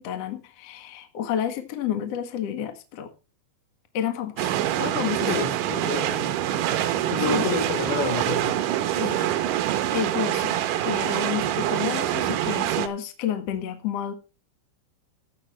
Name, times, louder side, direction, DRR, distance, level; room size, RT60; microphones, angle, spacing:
voice 1, 0.0-3.1 3.9-5.4 7.2-7.5 8.9-9.6 9.9-14.1, left 9 dB, 60° left, 7 dB, 1.7 m, -31 dB
sound 1, 4.4-12.9, right 12 dB, 80° right, 1.9 m, -25 dB
voice 2, 5.3-6.3 7.1-8.5, left 4 dB, 75° left, 4 dB, 6.0 m, -29 dB
14.5 x 8.2 x 3.2 m, 0.30 s
omnidirectional pair, 5.0 m